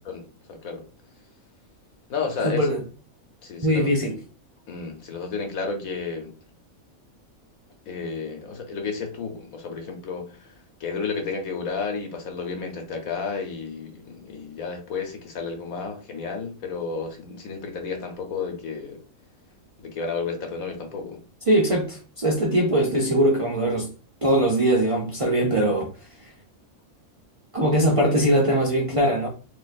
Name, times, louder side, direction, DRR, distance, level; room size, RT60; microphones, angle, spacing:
voice 1, 0.1-0.8 2.1-2.7 3.4-3.9 4.7-6.3 7.9-10.5 10.8-19.0 19.8-21.2, left 5 dB, 80° left, 1.4 m, -32 dB
voice 2, 2.4-2.8 3.6-4.2 21.5-23.9 24.2-25.9 27.5-29.3, right 1 dB, 35° right, 0.5 m, -21 dB
4.1 x 2.9 x 2.6 m
omnidirectional pair, 1.4 m